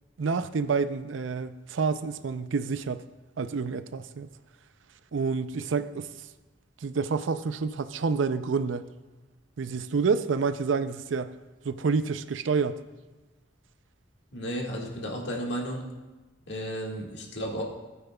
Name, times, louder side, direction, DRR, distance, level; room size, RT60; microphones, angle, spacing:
voice 1, 0.2-3.0 3.4-4.3 5.1-6.1 6.8-8.8 9.6-11.3 11.6-12.8, right 5 dB, 80° right, 12 dB, 0.5 m, -28 dB
voice 2, 14.3-15.9 16.5-17.6, equal, 65° left, -1 dB, 1.8 m, -33 dB
18.5 x 9.1 x 2.3 m, 1.2 s
head